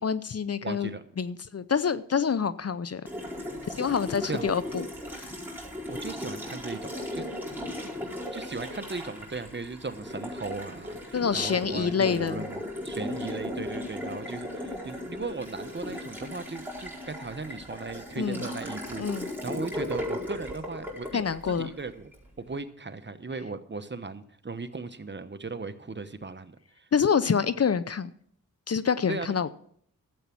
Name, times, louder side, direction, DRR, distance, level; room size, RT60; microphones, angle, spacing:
voice 1, 0.0-3.0 3.7-5.3 7.8-7.9 11.1-12.5 18.2-18.5 19.0-19.3 21.1-21.7 26.9-28.1 28.7-29.5, left 6 dB, 45° left, 15 dB, 0.7 m, -27 dB
voice 2, 0.6-1.0 4.3-4.5 5.9-7.2 7.8-7.9 8.3-21.2 21.5-22.1 22.4-26.9 29.1-29.3, right 3 dB, 35° right, 10 dB, 1.1 m, -37 dB
Water tap faucet, 3.1-22.2, left 1 dB, 5° right, 4.6 m, -37 dB
12.0 x 8.3 x 6.1 m, 0.63 s
cardioid pair, 50°, 33 cm